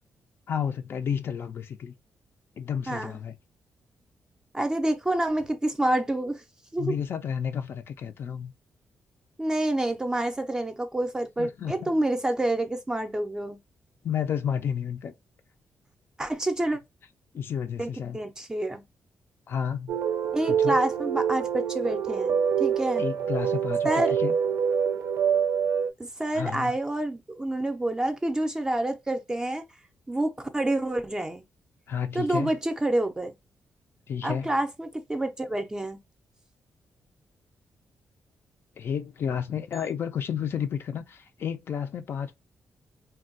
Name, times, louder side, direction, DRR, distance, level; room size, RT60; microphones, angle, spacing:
voice 1, 0.5-1.9 2.6-3.4 6.8-8.5 11.4-11.9 14.0-15.1 17.3-18.2 19.5-20.0 20.5-20.8 23.0-24.3 26.3-26.7 31.9-32.5 34.1-34.5 38.8-42.3, left 8 dB, 55° left, 0.4 m, -31 dB
voice 2, 2.9-3.2 4.5-6.4 6.7-7.0 9.4-13.6 16.2-16.8 17.8-18.8 20.3-23.1 23.8-24.1 26.0-29.6 30.1-31.4 32.1-33.3 34.2-36.0, right 1 dB, 15° right, 0.4 m, -28 dB
sound 1, 19.9-25.9, right 8 dB, 85° right, 0.4 m, -26 dB
3.3 x 2.2 x 2.5 m
cardioid pair, 130°, 5 cm